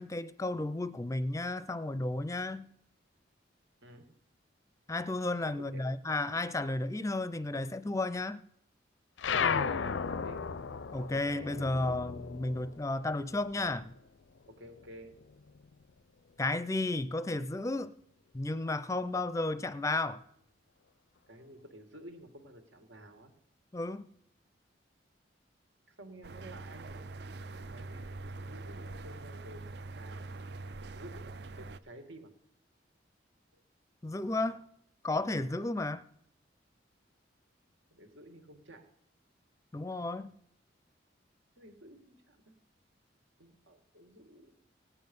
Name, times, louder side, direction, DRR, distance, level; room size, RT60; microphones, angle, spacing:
voice 1, 0.0-2.7 4.9-8.4 10.9-13.9 16.4-17.9 18.3-20.2 23.7-24.1 34.0-34.6 35.0-36.0 39.7-40.3, left 2 dB, 15° left, 0.5 m, -33 dB
voice 2, 5.5-5.8 9.3-10.5 14.5-15.2 21.3-23.3 25.9-27.1 27.7-30.3 30.9-32.3 37.9-38.9 41.6-42.5 43.4-44.5, right 1 dB, 85° right, 2.1 m, -51 dB
sound 1, 9.2-14.1 14.4-15.8, left 6 dB, 85° left, 0.5 m, -35 dB
sound 2, 26.2-31.8, right 2 dB, 60° right, 0.4 m, -44 dB
18.0 x 9.6 x 5.4 m
head